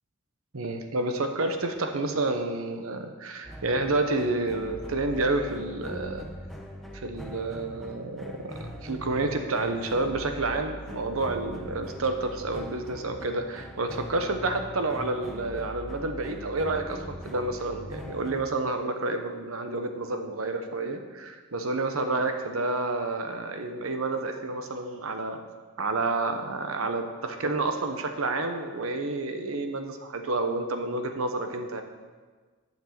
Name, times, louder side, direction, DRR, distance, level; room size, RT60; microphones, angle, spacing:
voice 1, 0.5-6.3 6.9-25.4 25.8-31.8, right 2 dB, 85° right, 6 dB, 1.0 m, -29 dB
sound 1, 3.4-18.5, equal, ahead, 0.8 m, -41 dB
7.3 x 6.0 x 7.6 m, 1.4 s
head